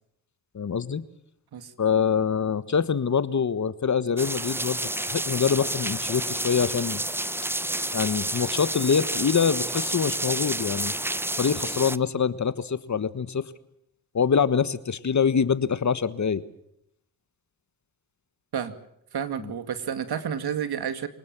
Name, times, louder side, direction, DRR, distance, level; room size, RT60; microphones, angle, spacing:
voice 1, 0.5-1.0 1.8-4.8 5.1-7.0 7.9-10.9 11.3-13.5 14.1-16.4 19.4-19.5, left 6 dB, 45° left, 15 dB, 1.5 m, -25 dB
sound 1, 4.2-12.0, right 1 dB, 5° right, 0.8 m, -30 dB
voice 2, 19.1-21.1, right 8 dB, 65° right, 11 dB, 2.3 m, -30 dB
25.5 x 19.0 x 7.5 m, 0.76 s
supercardioid pair, 55°, 41 cm